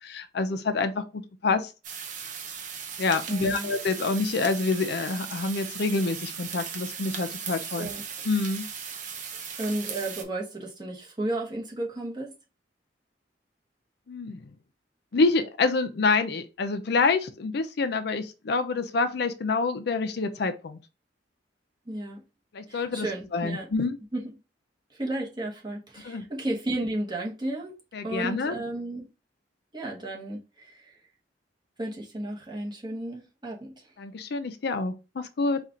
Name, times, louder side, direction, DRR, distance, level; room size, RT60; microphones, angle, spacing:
voice 1, 0.0-1.7 3.0-7.9 8.2-8.7 14.1-14.4 15.1-20.8 22.5-23.1 23.3-24.0 26.0-26.2 27.9-28.6 34.0-35.6, left 3 dB, 65° left, 0.5 m, -27 dB
sound 1, 1.8-10.2, right 7 dB, 45° right, 0.7 m, -37 dB
voice 2, 3.3-3.7 7.8-8.0 9.6-12.3 21.9-22.2 22.7-23.7 24.1-24.3 24.9-27.7 28.0-29.1 29.7-30.9 31.8-33.8, right 1 dB, 25° right, 1.1 m, -33 dB
4.2 x 2.4 x 3.7 m
head